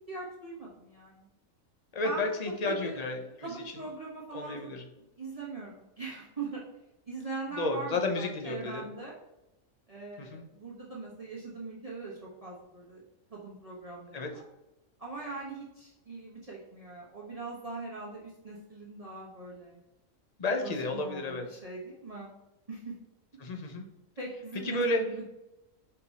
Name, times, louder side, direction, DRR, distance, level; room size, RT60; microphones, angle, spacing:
voice 1, 0.1-1.3 2.0-2.3 2.6-4.7 5.2-6.6 7.1-9.1 9.9-13.0 13.3-14.4 15.0-19.8 20.6-22.3 22.7-22.9 24.2-25.2, right 3 dB, 30° right, -4 dB, 1.1 m, -41 dB
voice 2, 1.9-3.5 4.3-4.8 7.6-8.9 10.2-10.4 14.1-14.3 20.4-21.5 23.4-23.9 24.6-25.0, left 2 dB, 35° left, 3 dB, 0.7 m, -32 dB
5.2 x 4.5 x 4.1 m, 0.96 s
omnidirectional pair, 1.5 m